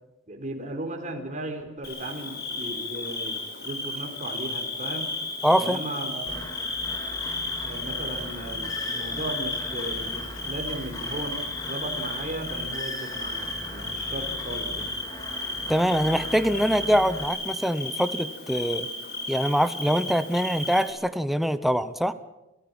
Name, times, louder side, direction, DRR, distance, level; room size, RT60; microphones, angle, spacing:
voice 1, 0.3-5.1 5.6-6.4 7.6-14.9, right 1 dB, 40° right, 3 dB, 4.1 m, -36 dB
Bird / Cricket, 1.8-20.9, left 2 dB, 55° left, 6.3 m, -33 dB
voice 2, 5.4-5.8 15.7-18.9 19.3-22.1, equal, ahead, 12 dB, 0.8 m, -24 dB
sound 1, 6.3-17.2, equal, 20° left, 4.0 m, -40 dB
28.5 x 14.5 x 8.8 m, 0.98 s
head